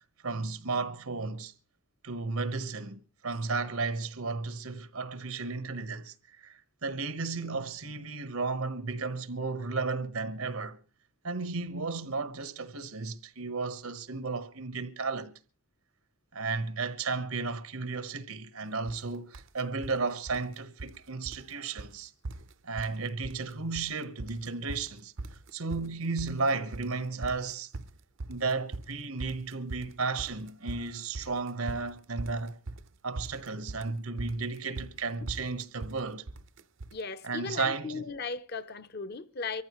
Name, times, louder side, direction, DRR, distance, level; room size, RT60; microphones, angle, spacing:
voice 1, 0.2-1.5 2.0-10.8 11.2-15.3 16.3-22.1 22.6-25.1 25.5-27.7 28.3-32.6 33.0-36.3 37.2-38.0, right 4 dB, 85° right, 1.2 m, -34 dB
sound 1, 18.9-19.0 19.3-20.0 20.3-21.0 21.3-21.5 21.8-21.9 22.2-23.0 23.2-23.9 24.2-37.0, right 2 dB, 60° right, 0.6 m, -41 dB
voice 2, 36.9-39.6, left 4 dB, 45° left, 0.7 m, -37 dB
24.0 x 14.5 x 3.1 m
head